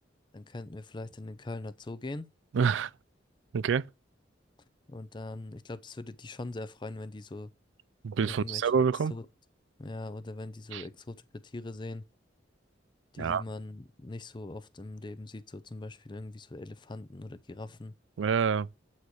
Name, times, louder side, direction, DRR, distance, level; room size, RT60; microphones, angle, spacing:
voice 1, 0.3-2.3 4.9-7.5 8.2-8.7 9.1-9.3 9.8-12.1 13.1-17.9, left 2 dB, 25° left, 0.5 m, -41 dB
voice 2, 2.5-2.9 3.5-3.9 8.0-9.1 10.7-10.8 13.2-13.4 18.2-18.7, right 6 dB, 80° right, 0.4 m, -27 dB
8.3 x 4.3 x 6.2 m
head